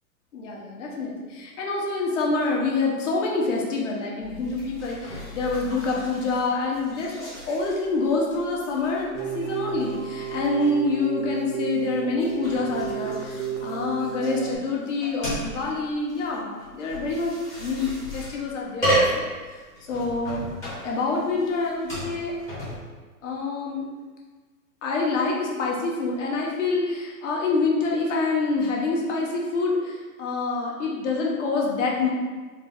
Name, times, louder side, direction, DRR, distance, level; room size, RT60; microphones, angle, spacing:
voice 1, 0.3-19.2 19.8-20.4 20.8-22.4 23.2-23.8 24.8-32.1, left 3 dB, 50° left, -2 dB, 0.9 m, -26 dB
sound 1, 4.2-22.8, right 1 dB, 5° left, 0.6 m, -34 dB
Keyboard (musical), 9.1-14.6, right 8 dB, 45° right, 0.4 m, -32 dB
3.8 x 2.3 x 3.4 m, 1.4 s
hypercardioid pair, 150°, 47 cm